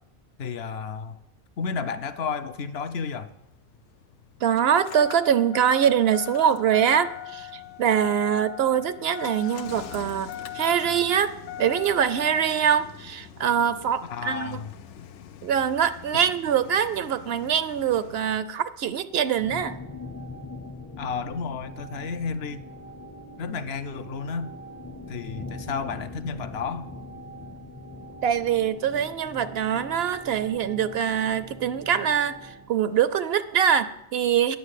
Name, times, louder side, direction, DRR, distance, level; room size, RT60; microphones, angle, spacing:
voice 1, 0.4-1.2 1.6-3.3 14.0-14.7 16.1-16.3 21.0-22.7 23.4-24.5 25.1-26.9, left 5 dB, 65° left, 11 dB, 0.8 m, -32 dB
Engine starting, 3.3-18.4, left 11 dB, 90° left, 1.0 m, -41 dB
voice 2, 4.4-7.5 7.8-14.6 15.4-19.8 28.2-34.6, right 8 dB, 65° right, 14 dB, 0.8 m, -24 dB
sound 1, 19.4-32.7, left 1 dB, 20° left, 0.5 m, -41 dB
9.5 x 6.0 x 8.2 m, 0.87 s
omnidirectional pair, 1.2 m